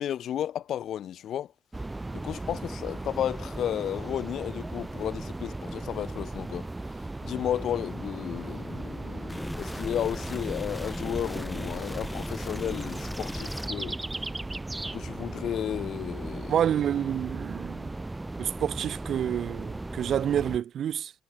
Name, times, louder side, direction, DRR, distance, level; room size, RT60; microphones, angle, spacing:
voice 1, 0.0-1.5 2.1-6.7 7.2-14.0 14.9-16.6, left 10 dB, 70° left, 0.5 m, -33 dB
sound 1, 1.7-20.6, right 2 dB, 15° right, 0.6 m, -37 dB
sound 2, 9.3-13.7, left 1 dB, 10° left, 3.6 m, -38 dB
voice 2, 16.5-18.0 18.4-21.1, right 9 dB, 65° right, 1.0 m, -28 dB
cardioid pair, 90°, 0 cm